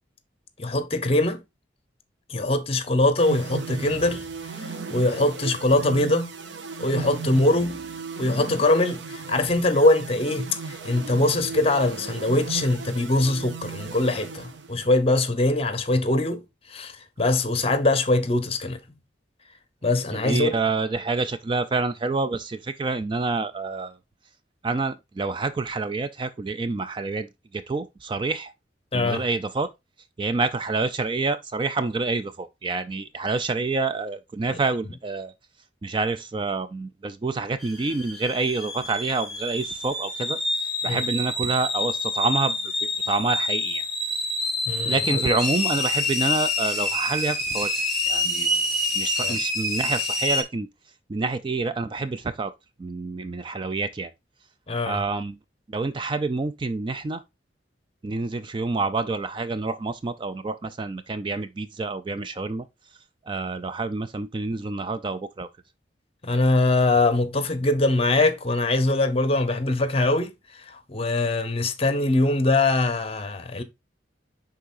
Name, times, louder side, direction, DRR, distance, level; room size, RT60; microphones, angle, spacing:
voice 1, 0.6-1.4 2.3-4.2 4.6-6.3 6.8-7.8 8.2-16.4 16.7-16.9 17.2-18.8 19.8-20.5 28.9-29.2 34.5-34.6 40.8-41.0 44.7-45.2 49.2-49.4 54.7-55.0 66.2-73.6, left 2 dB, 35° left, 0.8 m, -22 dB
sound 1, 3.2-15.0, right 5 dB, 85° right, 0.8 m, -36 dB
voice 2, 20.1-23.9 24.6-27.3 27.5-28.5 28.9-29.7 30.2-35.3 35.8-40.4 40.8-42.5 42.8-43.8 44.8-47.7 48.1-48.5 49.0-50.7 51.1-52.5 52.8-54.1 54.8-55.4 55.7-57.2 58.0-62.7 63.3-65.5, right 3 dB, 25° right, 0.3 m, -27 dB
sound 2, 37.6-50.4, left 2 dB, ahead, 1.9 m, -27 dB
10.0 x 3.8 x 2.5 m
head